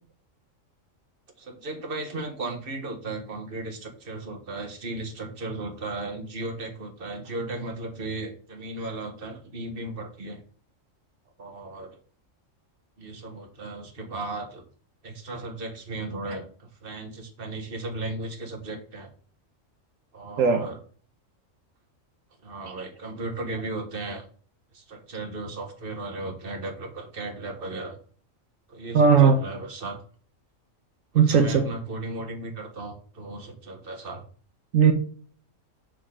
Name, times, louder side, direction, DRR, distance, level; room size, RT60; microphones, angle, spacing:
voice 1, 1.4-10.4 11.4-12.0 13.0-14.6 15.0-19.1 20.1-20.8 22.4-24.3 24.7-28.0 28.7-30.0 31.1-34.2, right 2 dB, 45° right, 1.6 m, -35 dB
voice 2, 20.4-20.7 28.9-29.4 31.1-31.6 34.7-34.9, right 6 dB, 80° right, 1.3 m, -17 dB
6.6 x 6.5 x 3.8 m
omnidirectional pair, 1.4 m